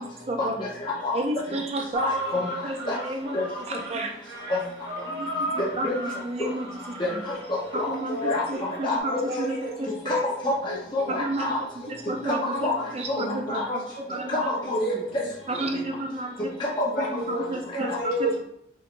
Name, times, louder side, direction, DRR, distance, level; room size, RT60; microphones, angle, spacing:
voice 1, 0.0-0.7 1.1-2.1 2.6-3.4 3.7-4.1 5.1-6.7 7.1-7.2 7.7-10.1 11.1-11.5 11.9-13.8 14.1-14.5 14.9-15.0 15.5-16.5 17.0-18.1, right 1 dB, 35° right, 3 dB, 0.4 m, -31 dB
voice 2, 0.8-1.1 2.0-2.4 2.9-3.0 3.3-3.4 4.5-4.6 5.8-5.9 7.0-7.3 7.7-7.9 8.2-8.4 8.8-9.3 10.1-11.6 12.2-12.7 13.1-13.2 13.5-13.6 14.3-14.8 16.8-17.0 17.9-18.0, left 2 dB, 25° left, -6 dB, 0.8 m, -27 dB
sound 1, 1.9-9.0, equal, 60° right, 0.8 m, -35 dB
voice 3, 7.3-7.6 8.1-8.6 9.0-9.7 10.1-10.2 10.7-11.4 12.3-12.8 13.2-14.2 14.7-15.8 16.9-18.4, equal, 50° left, -3 dB, 1.7 m, -32 dB
5.7 x 3.1 x 2.5 m, 0.73 s
head